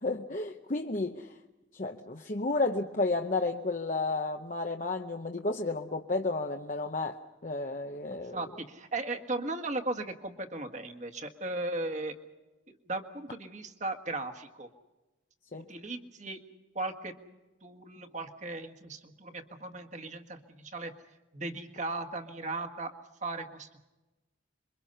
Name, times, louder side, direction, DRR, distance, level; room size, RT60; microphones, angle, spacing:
voice 1, 0.0-1.4 1.7-8.5 15.5-15.7, left 3 dB, 40° left, 4 dB, 0.9 m, -32 dB
voice 2, 8.3-12.1 12.9-14.7 15.5-16.4 16.7-17.1 17.6-20.9 21.3-22.9 23.2-23.8, right 2 dB, 35° right, 5 dB, 1.7 m, -37 dB
27.5 x 23.5 x 5.6 m, 1.1 s
head